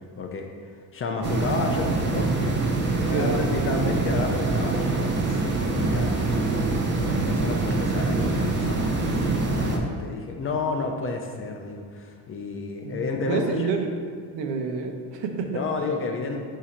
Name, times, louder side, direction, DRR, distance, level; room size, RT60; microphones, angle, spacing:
voice 1, 0.2-13.7 15.5-16.4, left 3 dB, 30° left, 3 dB, 0.4 m, -31 dB
sound 1, 1.2-9.8, right 3 dB, 25° right, 0.5 m, -24 dB
voice 2, 3.1-3.5 12.8-13.9 14.3-15.6, right 5 dB, 80° right, 4 dB, 0.8 m, -28 dB
7.3 x 2.8 x 5.0 m, 2.2 s
cardioid pair, 165°, 43 cm